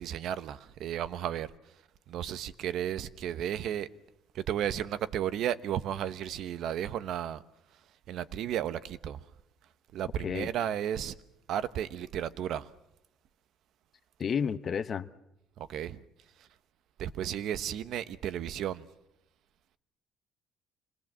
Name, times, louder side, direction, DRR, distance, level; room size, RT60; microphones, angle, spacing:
voice 1, 0.0-1.5 2.1-3.9 4.3-7.4 8.1-9.2 9.9-11.2 11.5-12.7 15.6-16.0 16.4-16.5 17.0-18.8, right 10 dB, 60° right, 1.0 m, -33 dB
voice 2, 14.2-15.1, left 7 dB, 35° left, 0.9 m, -31 dB
26.5 x 21.0 x 7.5 m
cardioid pair, 145°, 0 cm